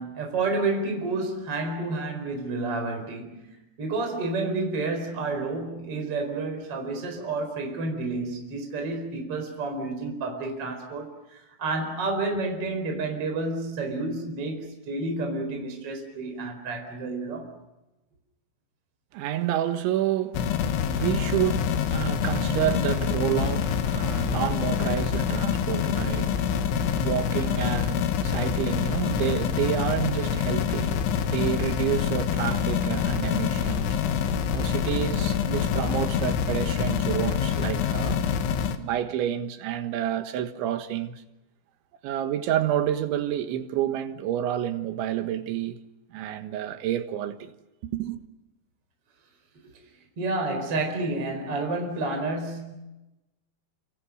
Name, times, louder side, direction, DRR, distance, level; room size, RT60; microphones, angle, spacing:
voice 1, 0.0-17.5 49.6-49.7 50.2-52.7, right 3 dB, 30° right, 5.1 m, -30 dB
voice 2, 19.1-20.5 20.8-26.5 26.9-34.0 34.5-38.2 38.8-41.2 42.0-45.8 46.1-47.5 47.8-48.2, right 11 dB, 80° right, 3.8 m, -29 dB
sound 1, 20.3-38.8, left 8 dB, 90° left, 4.0 m, -26 dB
29.5 x 27.5 x 6.6 m
omnidirectional pair, 5.2 m